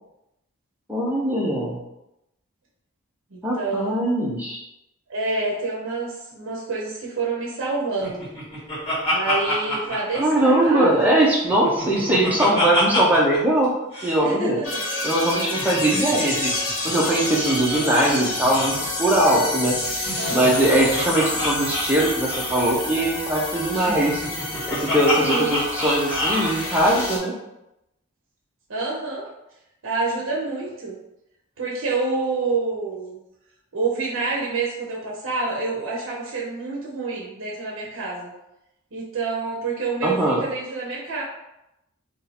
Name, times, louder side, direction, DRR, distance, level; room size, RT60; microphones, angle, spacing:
voice 1, 0.9-1.8 3.4-4.6 10.2-13.7 14.0-14.6 15.0-16.6 16.8-19.8 20.3-24.2 24.7-27.3 40.0-40.4, right 1 dB, 5° right, -4 dB, 0.6 m, -21 dB
voice 2, 3.3-3.9 5.1-8.3 9.1-11.0 14.2-14.8 20.2-20.6 25.2-25.6 28.7-29.3 29.8-31.0 31.6-33.2 33.7-38.3 38.9-41.2, right 3 dB, 70° right, -4 dB, 0.7 m, -27 dB
Laughter, 8.0-10.9 11.3-13.4 13.6-13.7 13.9-14.2 15.4-17.8 18.0-18.2 18.4-18.8 19.9-22.7 23.7-26.5, left 1 dB, 25° left, 1.4 m, -27 dB
sound 1, 14.6-27.2, left 2 dB, 70° left, 1.3 m, -29 dB
2.7 x 2.4 x 4.1 m, 0.88 s
head